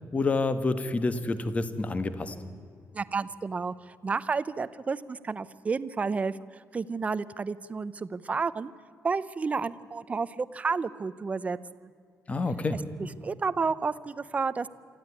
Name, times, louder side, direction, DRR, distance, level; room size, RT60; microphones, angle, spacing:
voice 1, 0.0-2.4 12.3-12.8, left 3 dB, 25° left, 11 dB, 1.2 m, -28 dB
voice 2, 2.9-8.7 9.0-11.9 13.2-14.7, right 4 dB, 25° right, 16 dB, 0.6 m, -31 dB
24.0 x 14.5 x 9.6 m, 2.3 s
wide cardioid pair, 175°, 6 cm